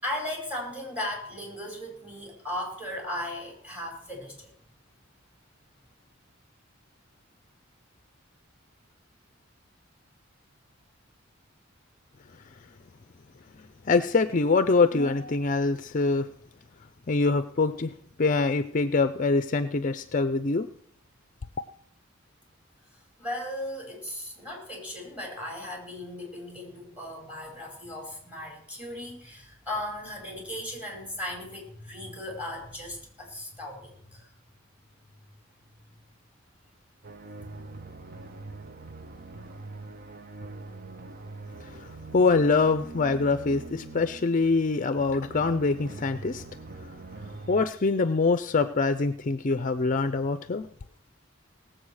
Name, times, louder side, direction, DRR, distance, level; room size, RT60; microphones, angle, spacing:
voice 1, 0.0-4.5 23.2-34.3 35.9-36.0, left 1 dB, 5° right, 0 dB, 5.1 m, -37 dB
voice 2, 13.8-16.3 17.1-17.9 18.2-20.7 41.6-41.9 42.1-46.5 47.5-50.7, left 3 dB, 40° left, 11 dB, 0.5 m, -24 dB
sound 1, 37.0-47.6, right 3 dB, 45° right, 0.9 m, -43 dB
18.5 x 7.7 x 6.4 m, 0.64 s
head